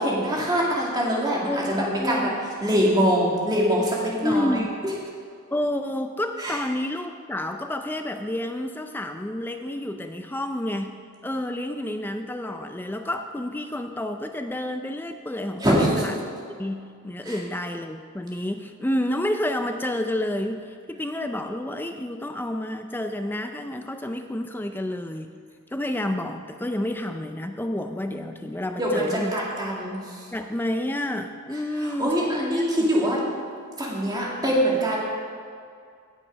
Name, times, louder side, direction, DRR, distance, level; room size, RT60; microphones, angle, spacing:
voice 1, 0.0-2.3 2.6-4.6 6.4-6.6 15.6-16.0 17.2-17.4 28.8-30.3 31.8-33.2 33.8-35.0, equal, 20° right, -4 dB, 2.1 m, -24 dB
voice 2, 1.5-2.3 4.2-4.7 5.5-11.0 11.2-16.1 16.5-25.3 25.7-29.4 30.3-32.9, left 1 dB, 10° left, 6 dB, 0.4 m, -29 dB
17.0 x 6.1 x 5.2 m, 2.3 s
head